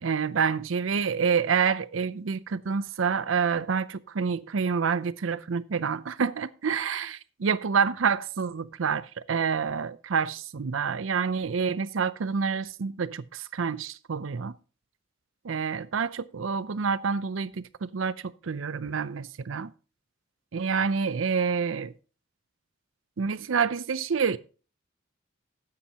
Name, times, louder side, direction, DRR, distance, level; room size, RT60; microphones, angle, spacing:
voice 1, 0.0-14.5 15.4-19.7 20.5-21.9 23.2-24.4, right 6 dB, 90° right, 0.6 m, -28 dB
13.0 x 9.8 x 2.9 m
head